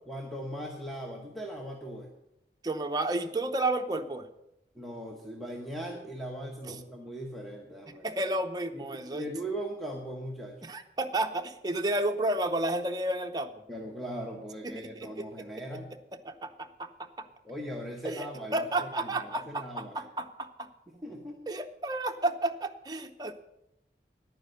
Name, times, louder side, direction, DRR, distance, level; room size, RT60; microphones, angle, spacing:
voice 1, 0.1-2.1 4.7-8.1 8.7-10.6 13.7-15.9 17.4-20.1 20.9-21.4, equal, ahead, 0 dB, 1.0 m, -39 dB
voice 2, 2.6-4.3 6.7-6.8 8.0-9.3 10.6-13.5 14.6-15.3 16.2-17.3 18.0-20.7 21.5-23.3, right 2 dB, 20° right, 5 dB, 0.7 m, -32 dB
10.5 x 9.5 x 6.5 m, 0.86 s
head